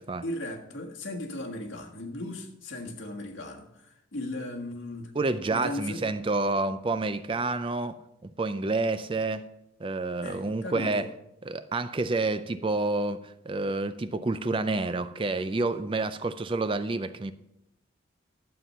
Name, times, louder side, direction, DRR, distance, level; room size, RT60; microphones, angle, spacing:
voice 1, 0.2-5.1 5.5-6.1 10.2-11.1, left 1 dB, 75° left, 1.6 m, -37 dB
voice 2, 5.1-9.4 9.8-11.1 11.4-17.3, right 3 dB, 25° right, 0.4 m, -29 dB
11.5 x 7.7 x 5.5 m
head